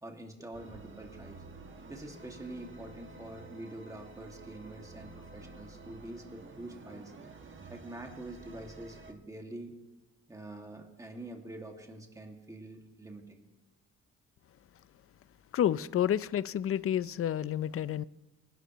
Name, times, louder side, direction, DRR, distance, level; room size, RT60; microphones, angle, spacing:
voice 1, 0.0-1.4 1.9-7.1 7.7-9.8 10.3-13.5, right 1 dB, 10° right, 2.1 m, -46 dB
sound 1, 0.5-9.1, right 3 dB, 40° right, 1.6 m, -50 dB
voice 2, 15.5-18.0, left 10 dB, 50° left, 0.5 m, -29 dB
26.5 x 11.5 x 3.1 m
cardioid pair, 90°, 30 cm